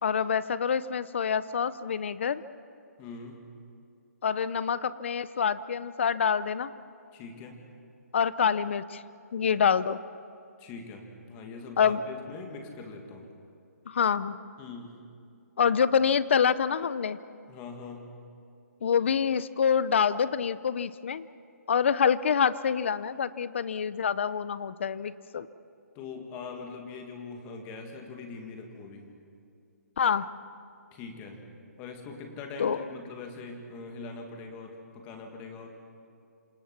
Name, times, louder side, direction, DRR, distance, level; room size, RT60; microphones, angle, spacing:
voice 1, 0.0-2.4 4.2-6.7 8.1-9.0 9.3-10.0 11.8-12.0 13.9-14.4 15.6-17.2 18.8-21.3 21.7-25.5 30.0-30.3 32.6-32.8, left 7 dB, 45° left, 16 dB, 0.7 m, -26 dB
voice 2, 3.0-3.5 7.1-7.6 10.6-13.3 14.6-15.0 17.5-18.2 25.9-29.1 30.9-31.4 31.8-35.8, left 4 dB, 15° left, 3 dB, 2.1 m, -42 dB
27.5 x 26.0 x 6.0 m, 2.5 s
hypercardioid pair, 170°, 9 cm